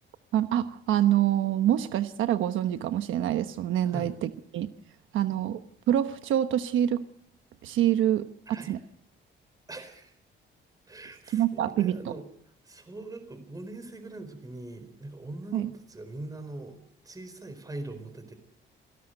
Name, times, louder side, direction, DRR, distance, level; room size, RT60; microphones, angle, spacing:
voice 1, 0.3-4.7 5.1-5.6 5.9-7.0 7.6-8.2 8.7-8.8 11.3-12.0 15.5-15.7, right 11 dB, 85° right, 9 dB, 1.1 m, -26 dB
voice 2, 3.8-4.1 8.5-8.8 9.7-10.1 10.9-12.3 12.6-16.8 17.0-18.3, right 2 dB, 20° right, 9 dB, 4.6 m, -41 dB
27.0 x 18.0 x 6.6 m, 0.71 s
cardioid pair, 135°, 20 cm